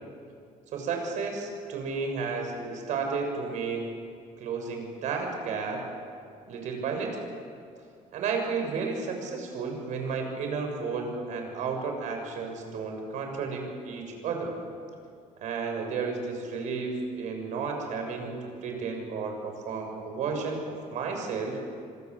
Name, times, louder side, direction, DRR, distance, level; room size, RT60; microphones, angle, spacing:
voice 1, 0.7-3.9 4.4-5.8 6.5-7.1 8.1-14.6 15.4-21.6, right 5 dB, 60° right, 3 dB, 6.8 m, -32 dB
27.0 x 26.5 x 8.1 m, 2.3 s
cardioid pair, 160°, 14 cm